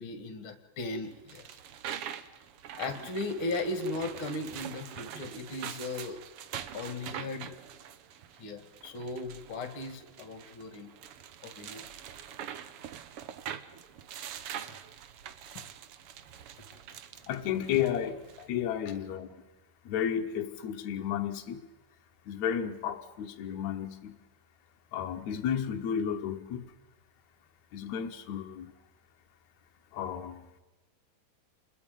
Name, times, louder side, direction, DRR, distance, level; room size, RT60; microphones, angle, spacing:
voice 1, 0.0-1.4 2.8-6.2 6.7-7.5 8.4-10.9 11.4-11.8, left 2 dB, 40° left, 2.5 m, -37 dB
sound 1, 1.0-18.5, right 9 dB, 85° right, 1.2 m, -44 dB
voice 2, 17.3-19.5 19.8-21.7 22.3-24.2 24.9-26.7 27.7-28.7 29.9-30.5, left 9 dB, 65° left, 2.1 m, -33 dB
29.0 x 21.5 x 5.3 m
omnidirectional pair, 4.0 m